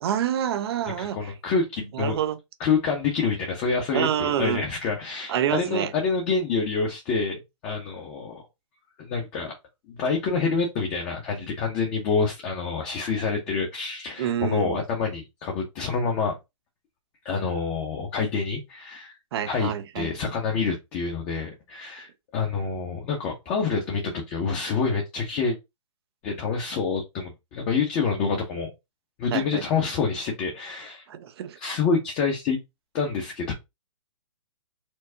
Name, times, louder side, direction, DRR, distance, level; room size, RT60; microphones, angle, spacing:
voice 1, 0.0-1.2 1.9-2.4 3.9-4.6 5.3-5.9 14.2-14.8 19.3-20.1 29.3-29.6 31.1-31.6, right 10 dB, 50° right, 0.6 m, -27 dB
voice 2, 1.0-2.1 2.6-8.4 9.0-9.5 9.9-16.4 17.2-19.1 19.5-25.6 26.2-28.7 29.2-31.1 31.6-32.6 32.9-33.5, left 5 dB, 30° left, 0.9 m, -27 dB
4.5 x 2.1 x 2.7 m
hypercardioid pair, 135°, 17 cm